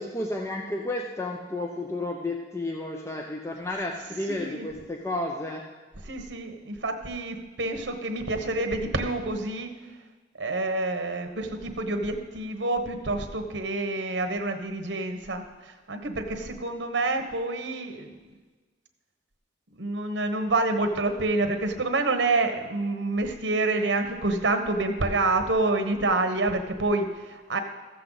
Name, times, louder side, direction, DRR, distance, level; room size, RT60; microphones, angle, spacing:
voice 1, 0.0-5.6, left 2 dB, 15° left, 1 dB, 0.6 m, -32 dB
voice 2, 4.3-4.7 6.0-9.7 10.4-18.1 19.8-27.6, right 2 dB, 75° right, 6 dB, 1.1 m, -27 dB
14.0 x 7.7 x 3.9 m, 1.4 s
head